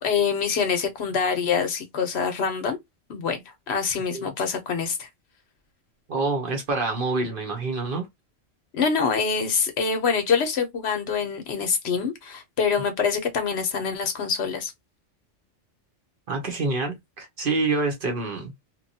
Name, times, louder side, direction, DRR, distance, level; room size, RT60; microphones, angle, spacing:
voice 1, 0.0-2.8 3.1-5.1 8.7-14.7, left 6 dB, 65° left, 0.9 m, -25 dB
voice 2, 6.1-8.1 16.3-18.5, right 3 dB, 50° right, 0.9 m, -27 dB
2.9 x 2.2 x 2.6 m
omnidirectional pair, 1.2 m